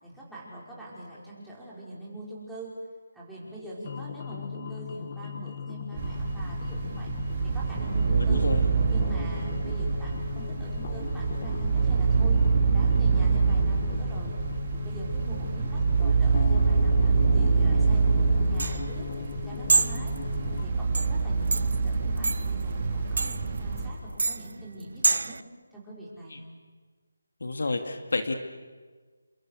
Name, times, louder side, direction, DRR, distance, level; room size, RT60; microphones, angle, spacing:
voice 1, 0.0-2.8 3.1-7.1 7.4-8.4 8.8-12.4 12.7-14.3 14.7-19.1 19.5-20.1 20.6-25.4 25.7-26.4, right 1 dB, ahead, -8 dB, 5.4 m, -43 dB
sound 1, 3.8-20.6, left 7 dB, 30° left, 1.2 m, -38 dB
sound 2, 6.0-23.9, right 4 dB, 30° right, 4.4 m, -25 dB
voice 2, 8.1-8.6 26.3-26.4 27.4-28.3, left 3 dB, 65° left, 5 dB, 2.7 m, -30 dB
sound 3, 18.0-25.4, right 3 dB, 65° right, 0.7 m, -29 dB
29.5 x 26.5 x 6.6 m, 1.4 s
figure-of-eight pair, 170°, 0 cm